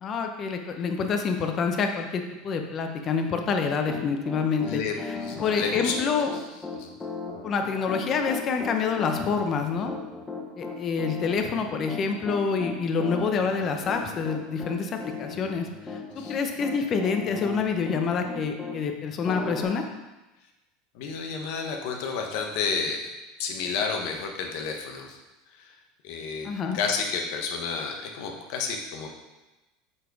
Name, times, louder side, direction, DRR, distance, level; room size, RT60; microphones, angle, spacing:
voice 1, 0.0-4.8 5.4-6.3 7.4-9.9 10.6-14.9 15.2-19.8 26.4-26.8, left 5 dB, 35° left, 5 dB, 0.9 m, -27 dB
Piano, 3.6-18.8 19.2-19.6, left 4 dB, 15° left, 1.1 m, -37 dB
voice 2, 4.6-6.1 6.7-6.9 16.2-16.4 20.9-23.1 23.4-25.2 25.5-25.7 26.0-29.1, left 5 dB, 65° left, 2 dB, 1.2 m, -31 dB
7.6 x 4.3 x 4.8 m, 1.1 s
supercardioid pair, 125°, 0 cm